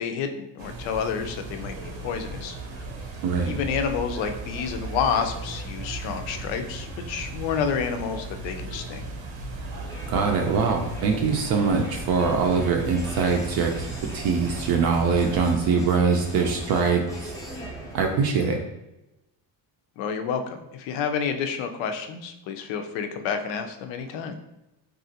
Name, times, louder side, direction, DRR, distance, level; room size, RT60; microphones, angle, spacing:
voice 1, 0.0-1.8 2.0-2.6 3.5-9.1 20.0-24.4, left 6 dB, 85° left, 6 dB, 0.6 m, -29 dB
sound 1, 0.6-15.6, right 2 dB, 90° right, 0.8 m, -36 dB
voice 2, 3.2-3.6 10.1-13.9 14.1-17.3 17.9-18.6, right 5 dB, 55° right, 2 dB, 0.5 m, -23 dB
Crowd, 9.8-18.6, right 1 dB, 10° left, 0.4 m, -40 dB
3.0 x 2.4 x 2.7 m, 0.92 s
cardioid pair, 140°, 45 cm